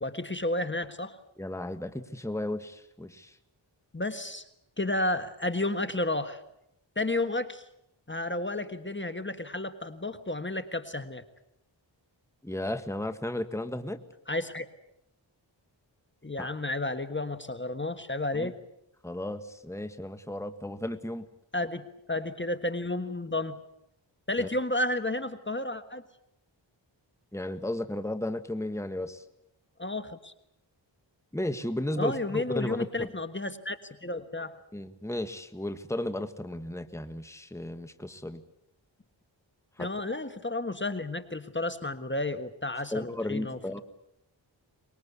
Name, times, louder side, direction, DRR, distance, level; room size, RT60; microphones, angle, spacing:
voice 1, 0.0-1.2 3.9-4.4 4.8-6.4 6.9-7.7 8.1-11.2 14.3-14.7 16.2-18.5 21.5-23.6 24.3-26.0 29.8-30.3 32.0-34.5 39.8-43.8, left 2 dB, 25° left, 10 dB, 1.5 m, -32 dB
voice 2, 1.4-3.4 12.4-14.0 16.4-16.5 18.3-18.5 19.0-21.2 24.4-24.5 27.3-29.2 31.3-33.1 34.7-38.4 39.8-39.9 42.9-43.8, left 1 dB, 5° left, 9 dB, 1.6 m, -34 dB
24.5 x 21.5 x 8.3 m, 0.79 s
wide cardioid pair, 55°, 45 cm